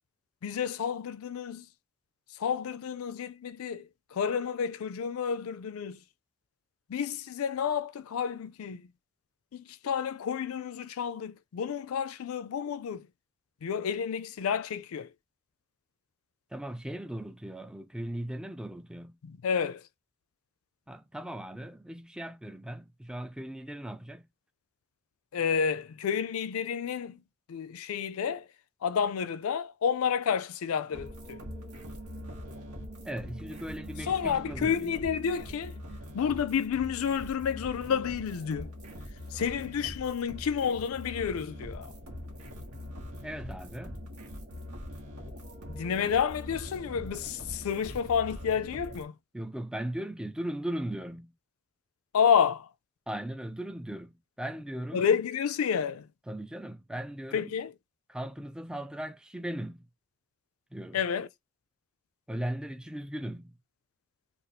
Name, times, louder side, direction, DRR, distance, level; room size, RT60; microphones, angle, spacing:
voice 1, 0.4-1.7 2.4-6.0 6.9-8.9 9.5-13.1 13.6-15.1 19.3-19.8 25.3-27.2 27.5-28.5 28.8-31.4 34.1-35.8 36.1-38.7 39.3-41.9 45.7-49.1 52.1-52.7 54.9-56.1 57.3-57.7 60.9-61.3, left 7 dB, 75° left, 0.4 m, -30 dB
voice 2, 16.5-19.2 20.9-24.3 33.0-35.0 43.2-44.0 49.3-51.4 53.1-55.1 56.3-57.6 58.1-59.9 60.7-61.0 62.3-63.5, right 1 dB, 5° right, 0.3 m, -38 dB
sound 1, 30.9-49.0, equal, 85° right, 1.2 m, -43 dB
2.6 x 2.4 x 4.0 m
head